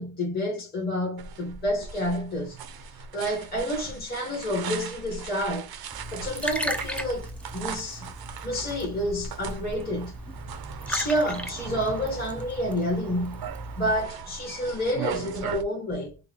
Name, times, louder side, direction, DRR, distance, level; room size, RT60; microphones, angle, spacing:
voice 1, 0.0-2.6 3.0-5.7 6.1-8.1 8.4-10.2 10.9-13.4 13.8-16.2, equal, 20° left, 1.2 m, -29 dB
sound 1, 1.2-15.6, right 6 dB, 50° right, 0.5 m, -39 dB
Liquid, 5.9-14.0, equal, 5° left, 0.3 m, -37 dB
3.6 x 2.2 x 3.4 m
cardioid pair, 100°, 49 cm